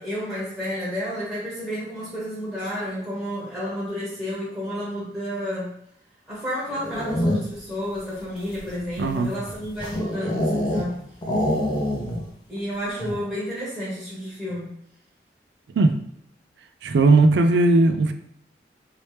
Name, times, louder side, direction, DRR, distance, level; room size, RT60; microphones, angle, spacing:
voice 1, 0.0-5.7 6.3-11.0 12.5-14.7, equal, 10° right, 1.0 m, -31 dB
sound 1, 6.7-7.7 8.4-10.9 11.2-12.3 12.6-12.7 13.0-13.3, left 1 dB, 25° left, 0.5 m, -26 dB
voice 2, 9.0-9.3 15.8-16.0 16.8-18.1, right 2 dB, 80° right, 0.4 m, -17 dB
3.0 x 2.9 x 3.1 m
head